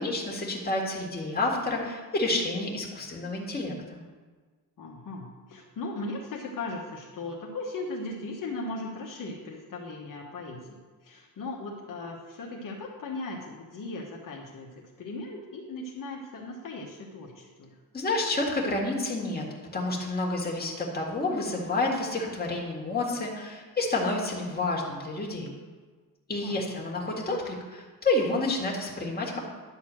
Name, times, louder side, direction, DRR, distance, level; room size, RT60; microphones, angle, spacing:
voice 1, 0.0-4.0 17.9-19.4 19.7-25.5 26.3-29.4, left 2 dB, 25° left, -2 dB, 2.0 m, -29 dB
voice 2, 4.8-17.7 26.4-26.7, left 2 dB, 55° left, -2 dB, 1.3 m, -38 dB
11.0 x 4.2 x 7.5 m, 1.4 s
cardioid pair, 125°, 38 cm